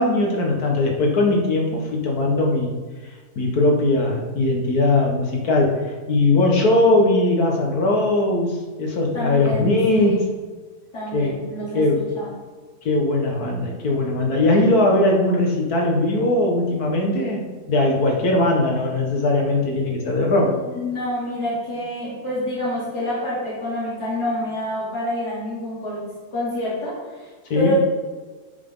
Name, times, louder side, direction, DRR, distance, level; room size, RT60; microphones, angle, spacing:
voice 1, 0.0-2.7 3.4-10.3 11.1-11.4 11.7-12.1 12.9-17.4 17.7-20.6 27.5-27.7, left 2 dB, 70° left, 0 dB, 2.0 m, -20 dB
voice 2, 9.1-10.2 10.9-11.8 12.2-12.3 20.7-26.0 26.3-27.7, left 1 dB, 90° left, -9 dB, 3.5 m, -27 dB
9.5 x 7.5 x 3.9 m, 1.4 s
omnidirectional pair, 1.7 m